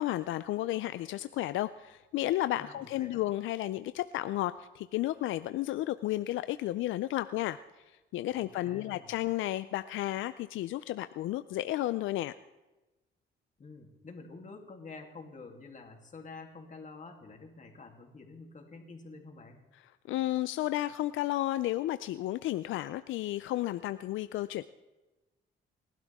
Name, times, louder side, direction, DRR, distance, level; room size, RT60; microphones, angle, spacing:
voice 1, 0.0-7.6 8.1-12.3 20.0-24.6, left 15 dB, 80° left, 13 dB, 0.5 m, -32 dB
voice 2, 2.6-3.2 8.3-9.2 13.6-19.6, left 3 dB, 40° left, 2 dB, 3.0 m, -48 dB
29.5 x 12.0 x 3.6 m, 1.1 s
cardioid pair, 90°, 20 cm